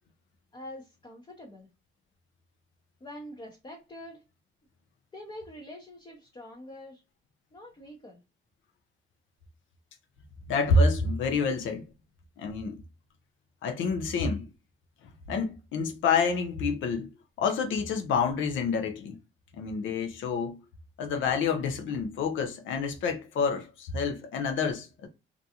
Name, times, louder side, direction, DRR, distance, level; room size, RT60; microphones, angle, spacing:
voice 1, 0.5-1.7 3.0-4.2 5.1-7.0 7.5-8.2, left 1 dB, 25° left, 0.7 m, -45 dB
voice 2, 10.5-11.9 12.4-12.8 13.6-14.4 15.3-17.1 17.4-19.2 19.5-20.6 21.0-25.1, left 4 dB, 75° left, 0.6 m, -28 dB
2.5 x 2.3 x 2.7 m
cardioid pair, 90°, 20 cm